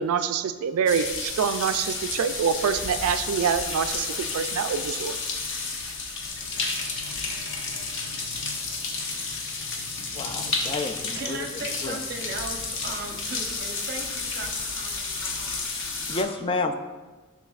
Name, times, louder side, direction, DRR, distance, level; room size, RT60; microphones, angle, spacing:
voice 1, 0.0-5.2, right 7 dB, 75° right, 10 dB, 0.3 m, -26 dB
sound 1, 0.9-16.2, left 4 dB, 60° left, 0.8 m, -31 dB
voice 2, 10.1-11.4 11.8-12.0 16.1-16.7, left 3 dB, 25° left, 8 dB, 0.3 m, -29 dB
voice 3, 10.9-15.6 16.1-16.4, right 3 dB, 50° right, 4 dB, 0.7 m, -38 dB
7.1 x 6.0 x 2.4 m, 1.3 s
head